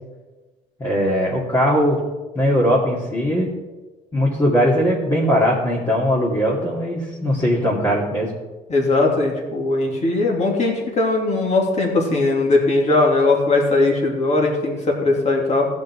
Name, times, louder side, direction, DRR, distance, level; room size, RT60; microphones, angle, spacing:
voice 1, 0.8-2.0 2.3-3.5 4.1-8.3, equal, 25° left, -6 dB, 2.6 m, -19 dB
voice 2, 8.7-15.6, left 2 dB, 40° left, -1 dB, 2.8 m, -19 dB
16.0 x 5.3 x 4.7 m, 1.2 s
cardioid pair, 110°, 17 cm